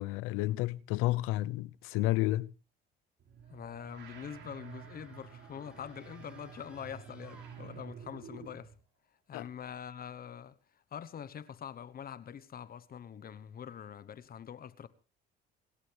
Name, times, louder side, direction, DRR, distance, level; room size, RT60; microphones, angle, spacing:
voice 1, 0.0-2.5 9.3-9.5, left 17 dB, 85° left, 0.7 m, -31 dB
sound 1, 3.2-8.7, right 7 dB, 60° right, 6.2 m, -50 dB
voice 2, 3.5-8.7 9.3-10.6 10.9-14.9, left 8 dB, 45° left, 1.1 m, -44 dB
sound 2, 4.5-8.1, right 1 dB, 5° right, 6.3 m, -61 dB
26.5 x 12.5 x 3.4 m
supercardioid pair, 90°, 21 cm